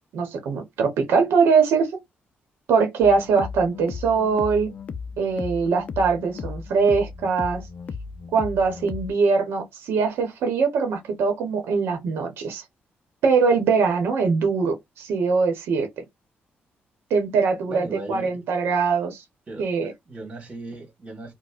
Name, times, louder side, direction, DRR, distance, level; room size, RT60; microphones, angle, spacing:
voice 1, 0.1-1.9 2.7-4.7 5.2-7.6 8.3-12.6 13.2-16.0 17.1-19.2 19.6-19.9, right 5 dB, 90° right, 0.8 m, -22 dB
sound 1, 3.0-9.1, left 5 dB, 40° left, 0.4 m, -36 dB
voice 2, 17.6-18.4 19.5-21.3, right 2 dB, 30° right, 1.6 m, -38 dB
4.2 x 2.1 x 2.4 m
cardioid pair, 140°, 4 cm